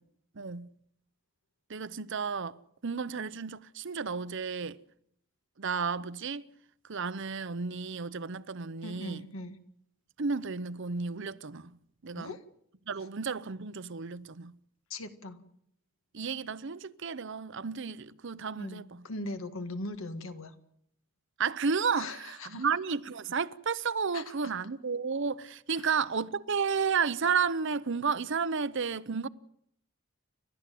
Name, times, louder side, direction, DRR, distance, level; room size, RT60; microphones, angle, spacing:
voice 1, 0.4-0.7 1.7-2.6 2.8-4.8 5.6-6.4 6.9-9.2 10.2-11.7 12.0-12.3 12.9-14.5 16.1-19.0 21.4-29.3, right 5 dB, 55° right, 0.7 m, -32 dB
voice 2, 8.8-9.6 12.2-12.4 14.9-15.4 18.6-20.5 22.0-22.7 24.1-24.2 25.8-25.9, left 2 dB, 65° left, 1.9 m, -40 dB
30.0 x 12.5 x 7.7 m
head